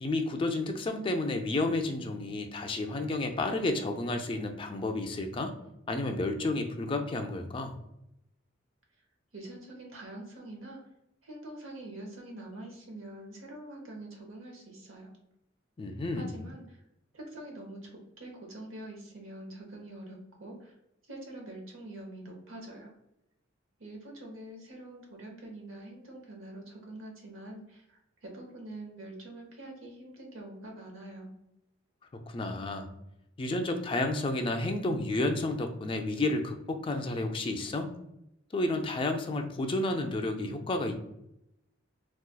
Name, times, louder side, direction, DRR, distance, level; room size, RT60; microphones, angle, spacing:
voice 1, 0.0-5.5 5.9-7.7 15.8-16.4 32.3-32.9 33.4-38.0 38.5-41.0, left 2 dB, 25° left, 4 dB, 0.3 m, -31 dB
voice 2, 9.3-10.8 11.2-15.1 16.1-16.8 17.1-20.7 21.0-22.9 23.8-31.3, right 1 dB, 90° right, 1 dB, 0.9 m, -45 dB
3.9 x 2.3 x 2.2 m, 0.84 s
head